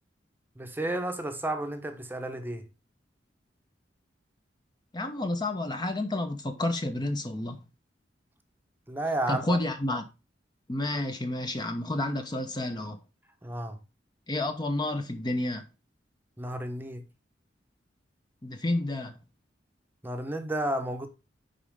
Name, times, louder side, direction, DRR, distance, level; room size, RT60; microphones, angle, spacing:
voice 1, 0.6-2.6 8.9-9.6 13.4-13.8 16.4-17.0 20.0-21.1, right 1 dB, 10° right, 0.8 m, -32 dB
voice 2, 4.9-7.6 9.3-10.0 10.7-13.0 14.3-15.6 18.4-19.1, left 2 dB, 25° left, 0.7 m, -30 dB
10.0 x 4.1 x 3.5 m
head